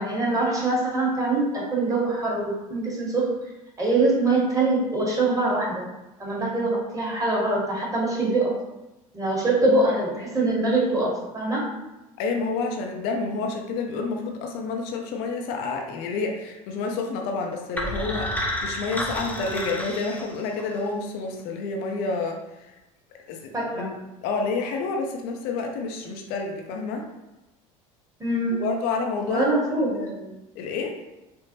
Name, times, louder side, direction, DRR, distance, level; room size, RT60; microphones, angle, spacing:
voice 1, 0.0-3.3 3.8-5.8 6.2-8.5 9.1-11.7 23.5-23.9 28.2-28.7 29.3-30.0, right 2 dB, 20° right, -4 dB, 1.2 m, -23 dB
voice 2, 12.2-22.7 23.3-23.9 24.2-27.1 28.6-30.3 30.5-30.9, left 4 dB, 60° left, 2 dB, 0.5 m, -29 dB
sound 1, 17.8-20.8, left 1 dB, 10° left, 0.5 m, -30 dB
3.2 x 2.0 x 2.8 m, 0.99 s
hypercardioid pair, 70°, 18 cm